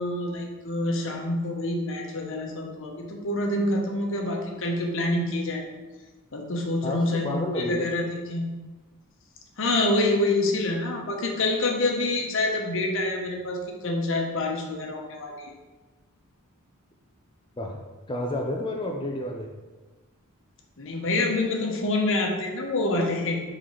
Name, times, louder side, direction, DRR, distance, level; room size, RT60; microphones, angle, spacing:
voice 1, 0.0-5.7 6.3-8.0 8.3-8.4 9.6-15.5 20.8-23.4, left 2 dB, 60° left, 1 dB, 1.0 m, -27 dB
voice 2, 6.8-7.9 17.6-19.5, left 1 dB, 20° left, 1 dB, 0.4 m, -30 dB
4.7 x 3.9 x 5.6 m, 1.3 s
head